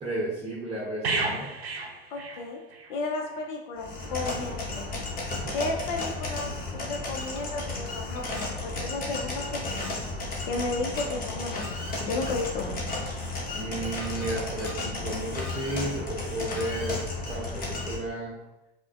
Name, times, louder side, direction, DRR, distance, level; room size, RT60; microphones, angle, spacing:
voice 1, 0.0-1.5 5.3-5.5 13.5-18.3, right 1 dB, 20° right, -4 dB, 0.9 m, -33 dB
sound 1, 1.0-2.9 3.2-3.4, right 3 dB, 85° right, 0.7 m, -32 dB
voice 2, 2.1-2.6 2.9-4.8 5.5-10.0 10.4-13.2, left 3 dB, 45° left, 1 dB, 0.6 m, -33 dB
sound 2, 3.8-18.0, left 2 dB, 30° left, 1.1 m, -33 dB
5.6 x 2.1 x 2.5 m, 0.93 s
figure-of-eight pair, 80°, 31 cm